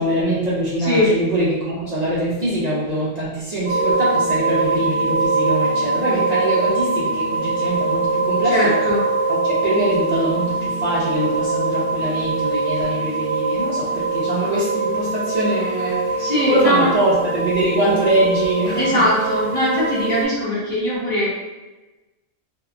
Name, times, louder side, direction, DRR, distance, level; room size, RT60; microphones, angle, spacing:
voice 1, 0.0-8.8 9.3-19.0, right 1 dB, 60° right, -8 dB, 0.4 m, -23 dB
voice 2, 0.8-1.1 8.5-9.0 16.2-16.9 18.7-21.3, left 1 dB, 10° left, -10 dB, 0.8 m, -20 dB
sound 1, 3.7-20.2, right 3 dB, 90° right, 1.2 m, -22 dB
2.8 x 2.1 x 2.4 m, 1.1 s
omnidirectional pair, 1.4 m